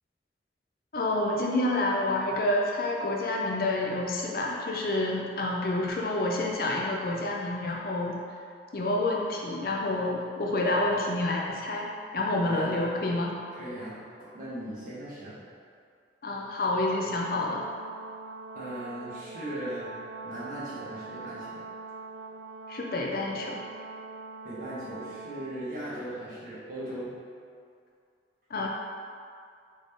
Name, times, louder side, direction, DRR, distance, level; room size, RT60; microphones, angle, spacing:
voice 1, 0.9-8.2 8.7-13.4 16.2-17.7 22.7-23.6 28.5-28.7, left 2 dB, 50° left, -1 dB, 0.5 m, -28 dB
voice 2, 12.4-12.7 13.5-14.0 14.3-15.4 18.5-19.9 20.2-21.6 24.4-27.1, right 1 dB, 45° right, -10 dB, 1.4 m, -38 dB
Brass instrument, 16.8-25.8, right 3 dB, 75° right, 0.4 m, -43 dB
3.8 x 3.4 x 3.7 m, 2.3 s
head